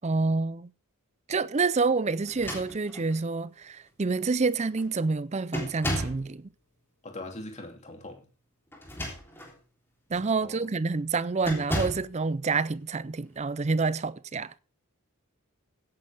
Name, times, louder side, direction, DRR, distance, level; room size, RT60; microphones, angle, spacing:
voice 1, 0.0-0.7 1.3-6.5 10.1-14.6, right 4 dB, 30° right, 0.5 m, -28 dB
sound 1, 2.3-3.2 4.0-4.1 4.5-4.9 5.5-6.3 8.7-9.6 10.1-10.3 11.4-12.1, equal, 10° left, 3.5 m, -34 dB
voice 2, 7.0-8.3 10.4-10.7, left 2 dB, 30° left, 2.9 m, -41 dB
16.5 x 9.7 x 3.5 m
head